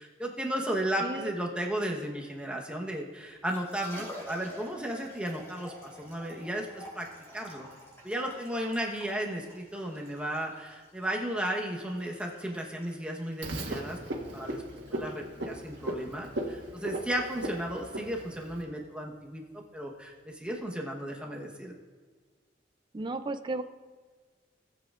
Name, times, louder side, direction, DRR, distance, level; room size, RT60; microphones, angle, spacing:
voice 1, 0.0-7.1 7.3-7.7 8.0-14.6 14.9-21.7, right 1 dB, 5° right, -1 dB, 1.1 m, -34 dB
voice 2, 1.0-1.3 22.9-23.6, right 2 dB, 25° right, 9 dB, 0.4 m, -34 dB
Liquid, 3.3-20.6, equal, 15° left, 3.2 m, -51 dB
Frog, 13.4-18.6, right 1 dB, 80° right, 1.5 m, -37 dB
19.0 x 7.7 x 2.5 m, 1.5 s
head